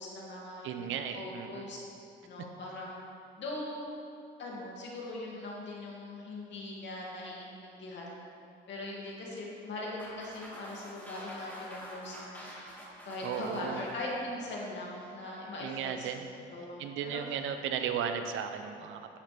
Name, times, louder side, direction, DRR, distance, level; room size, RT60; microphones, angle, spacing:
voice 1, 0.0-0.7 1.1-1.8 2.2-3.0 3.4-3.8 4.4-8.1 8.7-12.4 13.0-17.2, left 2 dB, 65° left, -4 dB, 2.4 m, -40 dB
voice 2, 0.6-1.6 13.2-13.8 15.6-16.3 16.8-19.1, right 8 dB, 85° right, 7 dB, 0.7 m, -35 dB
sound 1, 10.0-15.1, equal, 10° left, 2.0 m, -48 dB
9.9 x 8.8 x 3.4 m, 2.5 s
cardioid pair, 90°, 20 cm